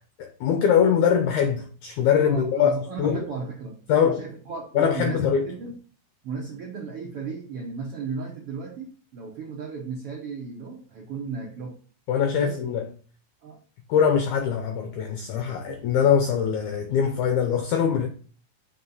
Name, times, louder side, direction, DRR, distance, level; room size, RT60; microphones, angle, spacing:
voice 1, 0.2-3.3 3.9-4.2 4.8-5.5 12.1-12.9 13.9-18.1, left 8 dB, 85° left, 1.7 m, -22 dB
voice 2, 2.2-5.8 6.2-11.7 12.3-12.6 13.4-13.6 15.7-15.8, right 5 dB, 75° right, 1.3 m, -35 dB
6.6 x 4.3 x 4.0 m
omnidirectional pair, 4.1 m